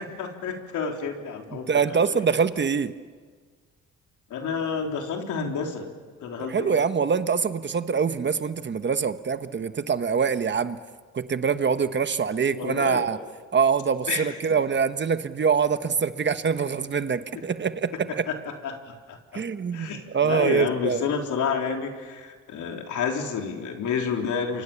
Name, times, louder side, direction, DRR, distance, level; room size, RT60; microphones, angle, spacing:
voice 1, 0.0-2.2 4.3-5.9 6.2-6.8 12.5-13.1 14.1-14.3 17.3-17.4 18.3-19.4 19.7-24.6, left 6 dB, 75° left, 3 dB, 3.8 m, -30 dB
voice 2, 1.5-2.9 6.5-10.8 11.1-13.2 13.5-18.3 19.3-21.0, right 6 dB, 35° right, 11 dB, 1.2 m, -24 dB
28.5 x 24.5 x 7.2 m, 1.5 s
cardioid pair, 90°, 30 cm